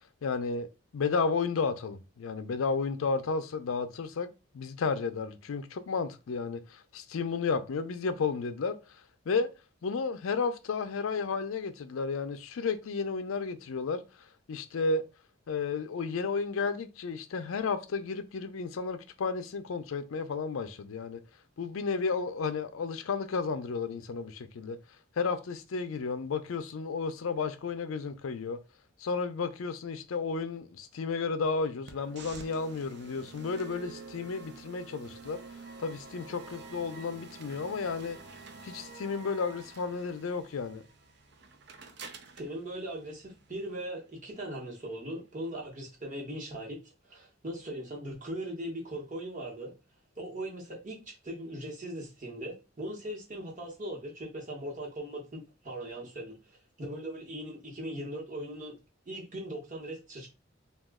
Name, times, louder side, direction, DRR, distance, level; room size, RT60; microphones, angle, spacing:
voice 1, 0.2-0.7 0.9-4.3 4.5-8.8 9.3-9.5 9.8-14.0 14.5-15.0 15.5-21.2 21.6-24.8 25.2-28.6 29.0-35.4 35.8-38.2 38.6-40.8, left 4 dB, 80° left, 0.4 m, -32 dB
sound 1, 31.8-43.8, right 4 dB, 55° right, 0.5 m, -48 dB
voice 2, 42.4-46.8 47.1-49.7 50.2-58.7 59.1-60.3, right 1 dB, 35° right, 1.0 m, -39 dB
2.9 x 2.3 x 3.5 m
head